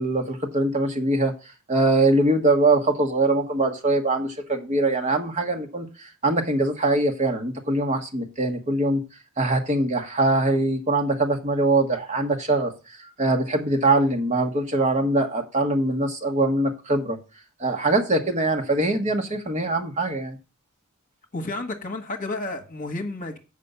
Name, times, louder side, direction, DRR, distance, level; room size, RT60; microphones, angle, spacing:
voice 1, 0.0-1.3 1.7-9.0 9.4-12.7 13.0-17.2 17.6-20.4, right 2 dB, 30° right, 1.2 m, -22 dB
voice 2, 21.3-23.4, left 2 dB, 35° left, 1.3 m, -31 dB
7.6 x 5.3 x 6.8 m
head